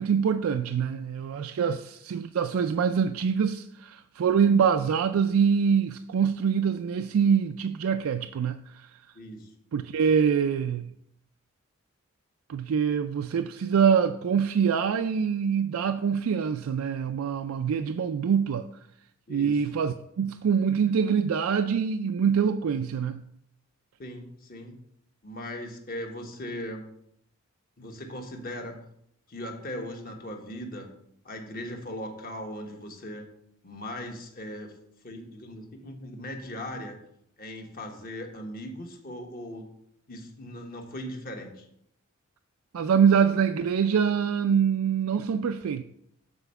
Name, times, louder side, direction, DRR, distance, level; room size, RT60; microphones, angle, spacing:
voice 1, 0.0-8.9 9.7-10.9 12.5-18.7 19.3-23.2 42.7-45.8, right 7 dB, 85° right, 0.4 m, -25 dB
voice 2, 9.1-9.5 19.3-19.6 24.0-24.8 25.2-26.8 27.8-28.8 29.3-30.9 31.2-33.3 33.6-34.7 35.0-37.0 37.4-39.7 40.1-41.6, left 1 dB, 45° left, 1.2 m, -38 dB
6.9 x 4.4 x 6.8 m
head